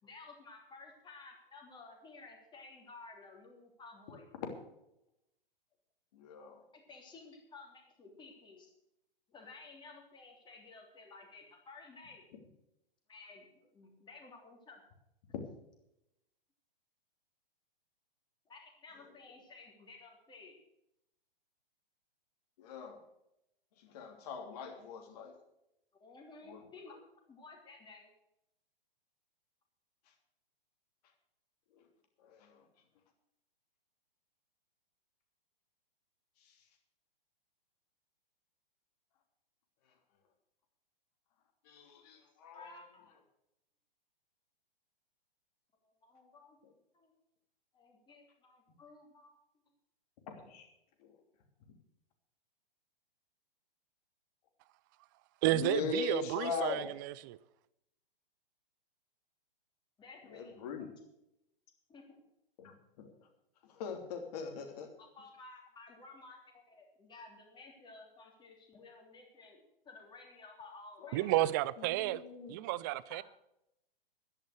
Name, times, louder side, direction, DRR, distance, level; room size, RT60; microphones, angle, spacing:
voice 1, 0.0-4.3 6.7-8.7 9.3-12.3 13.1-14.8 18.4-20.6 26.0-26.9 27.3-28.1 42.1-42.2 42.5-43.0 45.8-46.6 46.9-47.1 47.7-49.4 60.0-60.9 61.9-62.2 65.0-71.6 73.1-73.2, left 3 dB, 15° left, 3.3 m, -54 dB
voice 2, 6.1-6.6 15.3-15.4 22.6-23.0 23.9-25.4 26.5-26.6 26.9-27.0 32.2-32.6 36.4-36.5 41.6-42.7 50.3-50.7 55.5-56.9 60.3-60.9 62.6-63.1 63.7-64.9 71.0-71.4 71.8-72.5, left 5 dB, 40° left, 3.1 m, -41 dB
voice 3, 55.4-57.4 71.1-72.2 72.5-73.2, right 16 dB, 20° right, 0.4 m, -32 dB
12.0 x 10.5 x 6.6 m
figure-of-eight pair, 115°, 29 cm